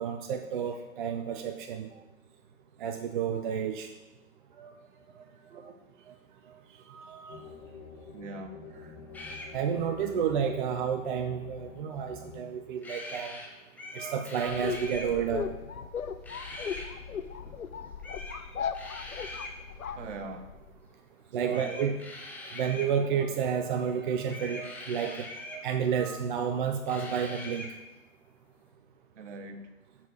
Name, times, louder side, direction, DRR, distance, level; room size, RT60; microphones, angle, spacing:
voice 1, 0.0-1.9 2.8-3.9 4.6-4.7 6.9-7.4 9.5-13.3 13.9-15.5 21.3-21.9 22.5-27.7, right 7 dB, 40° right, 6 dB, 0.5 m, -31 dB
voice 2, 5.5-5.9 8.1-8.6 19.9-20.6 21.3-21.9 29.2-29.7, right 4 dB, 60° right, 7 dB, 1.1 m, -40 dB
sound 1, 7.3-12.4, left 4 dB, 55° left, 1.7 m, -47 dB
sound 2, 9.1-9.5 12.8-13.5 13.7-15.1 16.2-16.9 18.0-18.4 18.7-19.5 21.5-22.9 24.3-25.6 26.9-27.7, left 2 dB, 5° left, 0.6 m, -42 dB
sound 3, 14.5-20.7, left 7 dB, 90° left, 0.6 m, -37 dB
7.2 x 4.2 x 6.3 m, 1.1 s
figure-of-eight pair, 115°, 41 cm